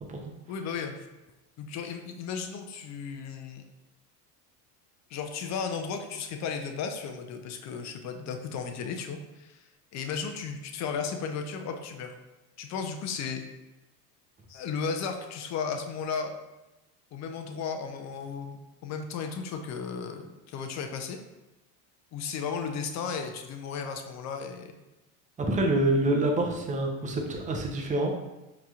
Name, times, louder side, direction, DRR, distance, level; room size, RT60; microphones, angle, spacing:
voice 1, 0.5-1.1 1.6-3.6 5.1-9.6 9.9-12.1 12.6-13.4 14.5-16.3 17.1-21.2 22.1-24.7, left 6 dB, 35° left, 5 dB, 0.4 m, -35 dB
voice 2, 25.5-28.1, right 1 dB, 15° right, 1 dB, 0.5 m, -26 dB
4.7 x 2.9 x 2.3 m, 1.0 s
hypercardioid pair, 90°, 49 cm